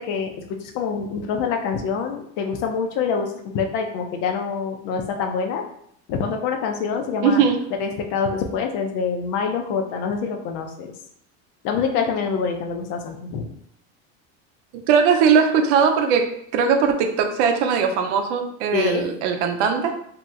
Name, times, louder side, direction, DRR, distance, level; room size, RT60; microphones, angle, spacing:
voice 1, 0.6-5.6 6.1-7.4 7.8-10.9 11.6-13.5 18.7-19.0, left 6 dB, 65° left, 4 dB, 0.6 m, -25 dB
voice 2, 7.2-7.6 14.9-20.0, right 6 dB, 85° right, 5 dB, 0.6 m, -19 dB
2.9 x 2.0 x 3.5 m, 0.71 s
cardioid pair, 135°, 35 cm